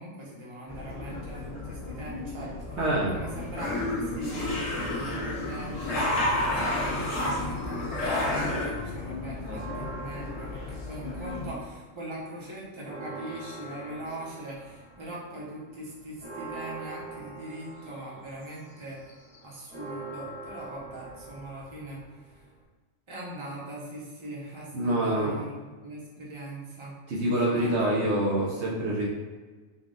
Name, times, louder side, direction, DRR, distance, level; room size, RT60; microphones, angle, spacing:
voice 1, 0.0-19.0 19.4-22.0 22.3-22.4 23.1-28.1, right 1 dB, 25° right, -6 dB, 0.9 m, -41 dB
sound 1, 0.7-11.5, left 3 dB, 55° left, 1.3 m, -38 dB
voice 2, 2.8-3.2 24.7-25.4 27.1-29.1, right 1 dB, 65° right, -4 dB, 1.0 m, -26 dB
sound 2, 3.3-8.7, left 1 dB, 80° left, 1.3 m, -29 dB
Church bell, 9.4-11.8 12.1-12.2 12.6-22.6, right 3 dB, 35° left, 1.5 m, -44 dB
3.9 x 2.3 x 3.7 m, 1.4 s
omnidirectional pair, 1.3 m